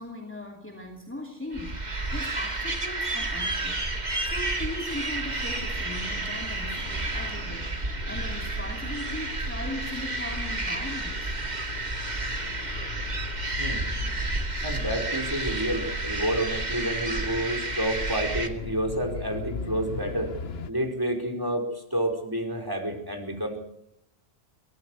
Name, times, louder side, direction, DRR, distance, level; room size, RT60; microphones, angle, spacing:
voice 1, 0.0-11.3, left 1 dB, 10° left, 1 dB, 2.7 m, -39 dB
sound 1, 1.5-18.5, right 2 dB, 45° right, 2.3 m, -31 dB
sound 2, 5.1-20.7, left 6 dB, 70° left, 1.3 m, -40 dB
voice 2, 13.6-14.1 14.6-20.3 20.7-23.6, right 1 dB, 20° right, 6 dB, 5.1 m, -29 dB
24.5 x 18.5 x 8.1 m, 0.79 s
omnidirectional pair, 1.1 m